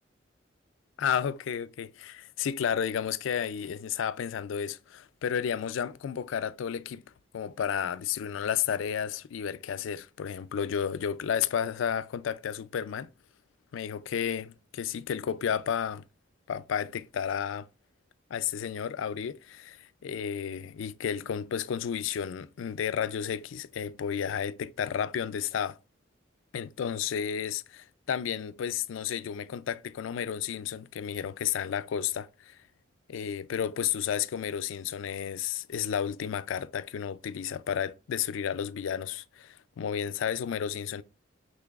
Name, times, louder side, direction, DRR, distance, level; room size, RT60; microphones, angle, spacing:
voice 1, 1.0-7.0 7.3-13.1 13.7-16.0 16.5-17.7 18.3-25.8 26.5-32.6 33.1-41.0, left 8 dB, 80° left, 0.3 m, -32 dB
5.8 x 3.3 x 2.4 m
head